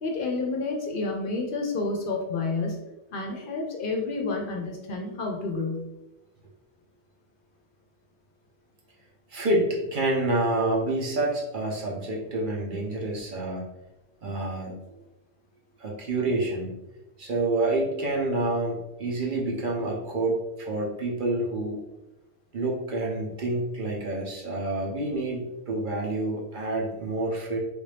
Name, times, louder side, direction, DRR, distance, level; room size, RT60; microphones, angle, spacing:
voice 1, 0.0-2.8 3.1-5.9, left 3 dB, 55° left, 1 dB, 0.7 m, -29 dB
voice 2, 9.3-13.7 14.2-14.7 15.8-16.7 17.2-21.8 22.5-27.6, right 2 dB, 50° right, -2 dB, 0.8 m, -28 dB
3.3 x 2.6 x 3.3 m, 0.98 s
omnidirectional pair, 1.2 m